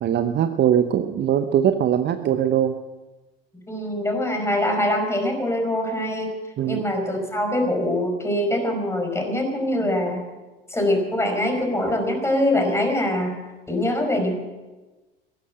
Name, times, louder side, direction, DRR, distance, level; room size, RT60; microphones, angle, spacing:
voice 1, 0.0-2.7 6.6-6.8, right 10 dB, 35° right, 9 dB, 0.9 m, -21 dB
voice 2, 3.5-6.3 6.6-10.2 10.7-13.4 13.7-14.3, left 1 dB, 10° left, 3 dB, 5.0 m, -23 dB
16.0 x 12.0 x 7.6 m, 1.2 s
hypercardioid pair, 75°, 29 cm